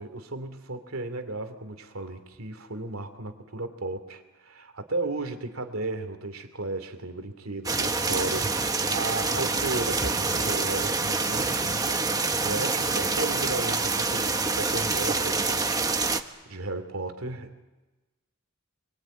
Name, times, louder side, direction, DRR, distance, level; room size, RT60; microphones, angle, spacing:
voice 1, 0.0-12.0 12.4-17.6, right 2 dB, 85° right, 8 dB, 2.6 m, -35 dB
sound 1, 7.7-16.2, right 3 dB, 15° right, 1.1 m, -26 dB
27.5 x 23.0 x 9.0 m, 1.2 s
head